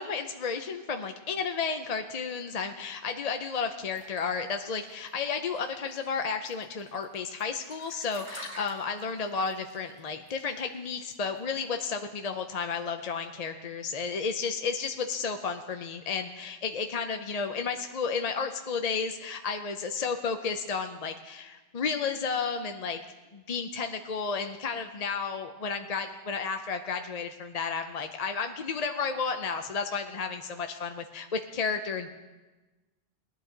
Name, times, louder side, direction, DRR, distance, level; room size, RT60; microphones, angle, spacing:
voice 1, 0.0-23.0 23.3-32.1, left 5 dB, 45° left, 6 dB, 0.6 m, -32 dB
sound 1, 4.0-11.6, right 1 dB, 30° right, 3.3 m, -49 dB
19.0 x 11.0 x 3.9 m, 1.2 s
omnidirectional pair, 1.1 m